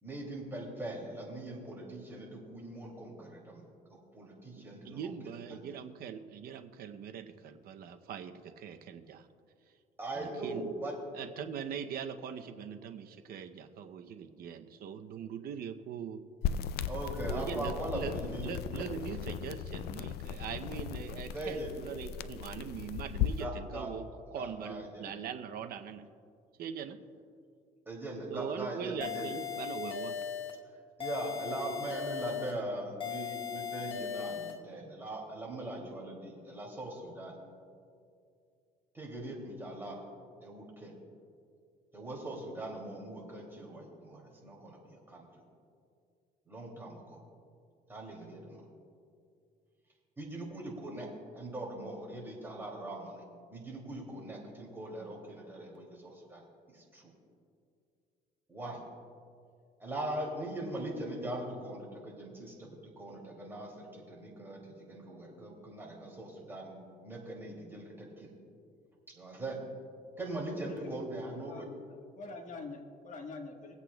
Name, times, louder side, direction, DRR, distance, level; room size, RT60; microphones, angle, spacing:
voice 1, 0.0-3.6 4.1-5.6 10.0-11.0 16.9-18.9 21.3-21.8 23.4-23.9 24.3-25.1 27.9-29.3 31.0-37.4 38.9-40.0 40.4-40.9 41.9-45.2 46.5-47.2 47.9-48.6 50.2-53.2 53.5-57.1 58.5-58.8 59.8-68.3 69.1-69.6 70.2-71.7, right 1 dB, 15° right, -2 dB, 2.6 m, -41 dB
voice 2, 4.5-9.3 10.1-10.7 11.1-16.2 17.3-24.1 24.3-26.0 26.6-27.0 28.3-30.2, right 8 dB, 65° right, 7 dB, 0.7 m, -41 dB
sound 1, 16.4-23.5, left 9 dB, 70° left, 0.4 m, -37 dB
sound 2, 29.0-30.6 31.0-32.6 33.0-34.6, left 8 dB, 30° left, 1.0 m, -38 dB
voice 3, 70.6-71.1 71.4-71.6 72.2-73.8, left 3 dB, 50° left, 3 dB, 1.3 m, -45 dB
23.5 x 8.2 x 2.3 m, 2.3 s
cardioid pair, 110°, 17 cm